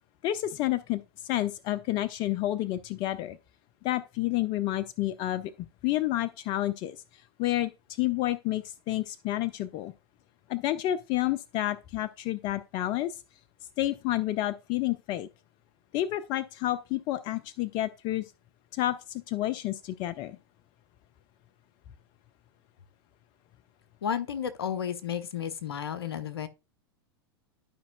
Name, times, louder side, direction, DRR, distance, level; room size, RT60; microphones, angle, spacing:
voice 1, 0.2-3.4 3.8-5.5 5.8-7.0 7.4-9.9 10.5-13.2 13.8-15.3 15.9-18.3 18.7-20.4, left 15 dB, 35° left, 0.4 m, -30 dB
voice 2, 24.0-26.5, left 8 dB, 70° left, 0.8 m, -32 dB
12.0 x 5.2 x 2.2 m
figure-of-eight pair, 95°, 13 cm